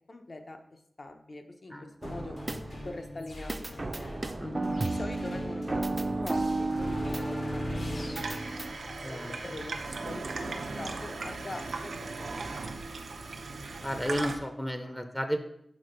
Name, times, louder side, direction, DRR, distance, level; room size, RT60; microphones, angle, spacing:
voice 1, 0.1-2.4 2.8-4.3 4.8-5.9 6.2-12.9, left 2 dB, 50° left, 5 dB, 0.7 m, -44 dB
sound 1, 2.0-11.8, left 1 dB, 80° left, 2.6 m, -41 dB
sound 2, 2.0-3.0 3.5-8.7, right 2 dB, 40° right, 0.5 m, -33 dB
voice 2, 4.4-4.7 9.0-9.3 13.8-15.4, equal, 10° left, 6 dB, 0.6 m, -33 dB
Water tap faucet / Sink (filling or washing), 8.2-14.4, right 3 dB, 90° right, 0.6 m, -38 dB
6.3 x 3.7 x 5.0 m, 0.74 s
wide cardioid pair, 80°, 0 cm